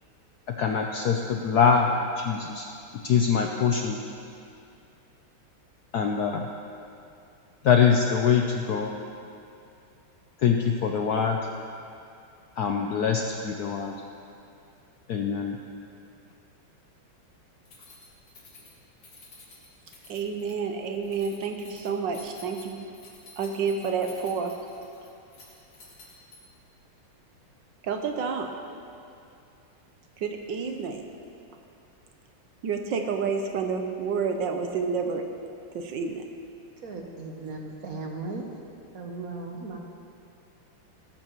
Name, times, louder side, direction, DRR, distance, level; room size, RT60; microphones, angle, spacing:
voice 1, 0.6-2.7 3.0-4.0 5.9-6.4 7.6-8.9 10.4-11.4 12.6-14.0 15.1-15.6, left 6 dB, 70° left, 2 dB, 0.9 m, -23 dB
Keys jangling, 17.7-26.7, left 3 dB, 90° left, 3.1 m, -51 dB
voice 2, 20.1-22.8 23.4-24.5 27.8-28.5 30.2-31.1 32.6-35.2 35.7-36.2, right 5 dB, 70° right, 4 dB, 1.3 m, -29 dB
voice 3, 36.8-38.5 38.9-39.8, right 3 dB, 50° right, 1 dB, 1.2 m, -37 dB
17.0 x 13.0 x 3.0 m, 2.6 s
omnidirectional pair, 2.3 m